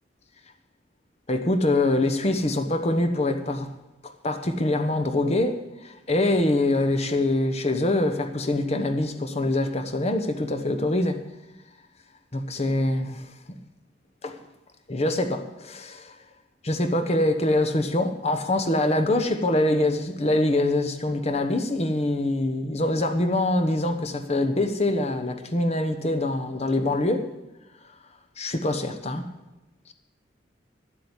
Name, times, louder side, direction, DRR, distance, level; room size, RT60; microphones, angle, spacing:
voice 1, 1.3-3.7 4.2-11.2 12.3-13.3 14.2-14.4 14.9-16.1 16.6-27.3 28.4-29.3, left 1 dB, 35° left, 1.0 m, -24 dB
11.5 x 7.6 x 8.2 m
head